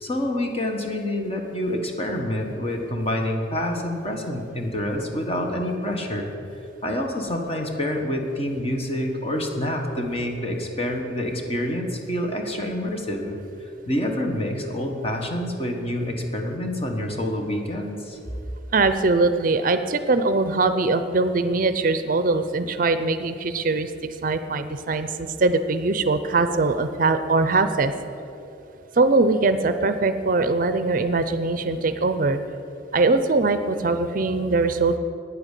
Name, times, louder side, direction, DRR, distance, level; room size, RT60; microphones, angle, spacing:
voice 1, 0.0-6.3 6.8-13.4 13.9-18.2, left 1 dB, 30° left, 3 dB, 1.4 m, -27 dB
voice 2, 18.7-23.9 24.2-27.9 28.9-32.4 32.9-35.0, right 3 dB, 45° right, 10 dB, 0.5 m, -21 dB
9.5 x 9.0 x 8.2 m, 2.8 s
head